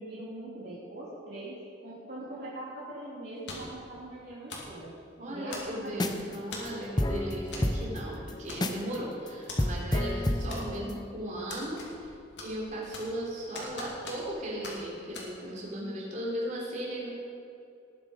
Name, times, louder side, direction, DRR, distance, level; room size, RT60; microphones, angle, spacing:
voice 1, 0.0-4.9 5.3-6.1, right 1 dB, 55° right, -8 dB, 2.8 m, -42 dB
sound 1, 3.5-3.8 4.5-4.8 5.5-5.9 6.5-6.8 7.5-7.7 8.0-8.1 8.5-9.0 9.5-9.6 10.5-11.0 11.5-12.1 12.4-13.2 13.5-14.4 14.6-14.8 15.1-15.3, left 3 dB, 60° left, 2.6 m, -42 dB
voice 2, 5.2-12.1 12.4-17.1, equal, 40° right, -5 dB, 3.5 m, -37 dB
sound 2, 5.9-6.3 6.7-6.8 7.0-9.0 9.3-9.4 9.6-11.0, left 1 dB, 20° left, 0.7 m, -29 dB
19.5 x 7.4 x 5.1 m, 2.6 s
head